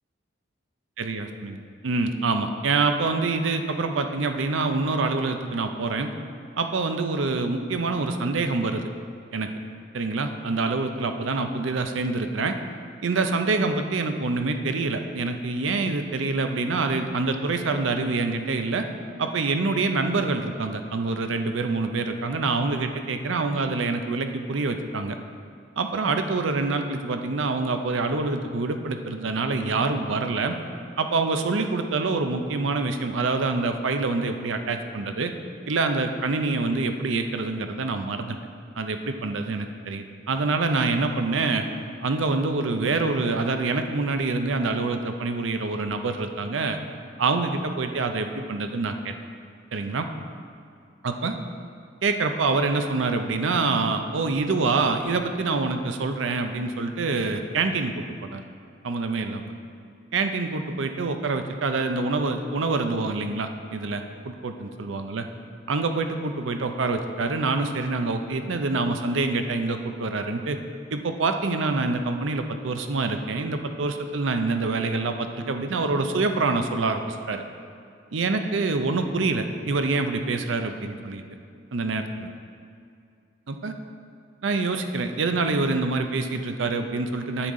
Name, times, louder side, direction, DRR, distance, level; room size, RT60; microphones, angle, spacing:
voice 1, 1.0-6.1 6.6-8.8 9.3-9.5 9.9-12.6 13.0-18.9 19.2-25.2 25.8-30.6 31.0-35.3 35.7-38.4 38.8-41.6 42.0-46.8 47.2-49.1 49.7-50.1 51.0-51.4 52.0-58.4 58.8-59.5 60.1-65.3 65.7-70.6 70.9-77.4 78.1-81.2 81.7-82.3 83.5-83.7 84.4-87.5, right 3 dB, 75° right, 6 dB, 0.6 m, -26 dB
9.9 x 7.1 x 3.7 m, 2.4 s
head